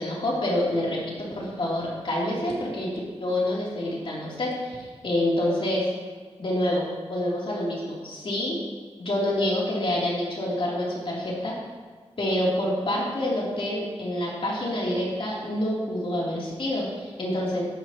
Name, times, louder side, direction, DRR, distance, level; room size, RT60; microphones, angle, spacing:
voice 1, 0.0-2.9 3.2-5.8 6.4-8.5 9.0-11.5 12.2-17.6, left 1 dB, 50° left, -5 dB, 3.4 m, -27 dB
14.0 x 11.5 x 3.1 m, 1.5 s
wide cardioid pair, 125°, 11 cm